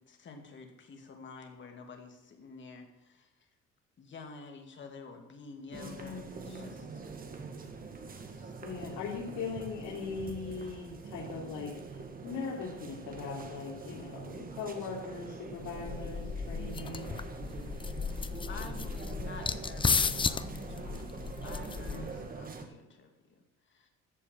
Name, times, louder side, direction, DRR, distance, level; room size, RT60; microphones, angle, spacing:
voice 1, 0.0-3.5 4.0-7.0 7.7-8.5 18.5-21.1 21.4-23.9, left 4 dB, 40° left, 3 dB, 2.5 m, -49 dB
voice 2, 5.7-6.8 8.6-17.2 21.9-22.0, left 5 dB, 85° left, -4 dB, 3.3 m, -40 dB
sound 1, 5.7-22.7, right 4 dB, 30° right, 1.6 m, -44 dB
sound 2, 15.6-22.3, left 5 dB, 15° left, 0.5 m, -34 dB
14.5 x 7.0 x 8.9 m, 0.89 s
cardioid pair, 150°, 30 cm